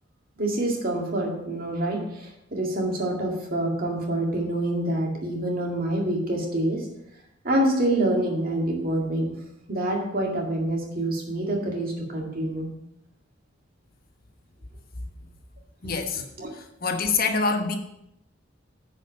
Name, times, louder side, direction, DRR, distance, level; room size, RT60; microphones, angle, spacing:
voice 1, 0.4-6.9 7.4-9.3 9.7-12.7 16.4-16.5, right 1 dB, 55° right, 0 dB, 2.3 m, -26 dB
voice 2, 15.8-16.2 16.8-17.8, left 4 dB, 55° left, 5 dB, 1.1 m, -25 dB
9.6 x 5.1 x 6.5 m, 0.81 s
head